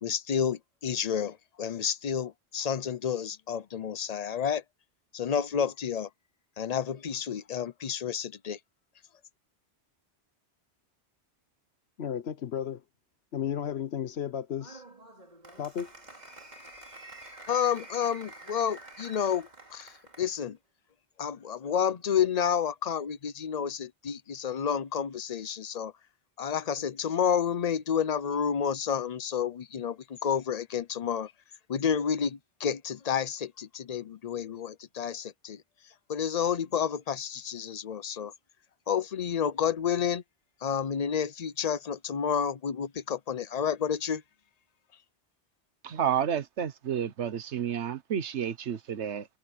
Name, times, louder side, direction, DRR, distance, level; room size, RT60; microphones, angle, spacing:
voice 1, 0.0-4.6 5.1-6.1 6.6-8.6 17.5-20.6 21.2-25.9 26.4-31.3 31.7-35.6 36.1-38.3 38.9-40.2 40.6-44.2, left 8 dB, 40° left, 0.7 m, -30 dB
voice 2, 12.0-12.8 13.3-14.8 15.6-15.9, left 9 dB, 70° left, 1.1 m, -33 dB
Applause, 14.6-20.4, right 2 dB, 40° right, 3.3 m, -48 dB
voice 3, 45.8-49.2, right 8 dB, 90° right, 1.3 m, -30 dB
omnidirectional pair, 1.1 m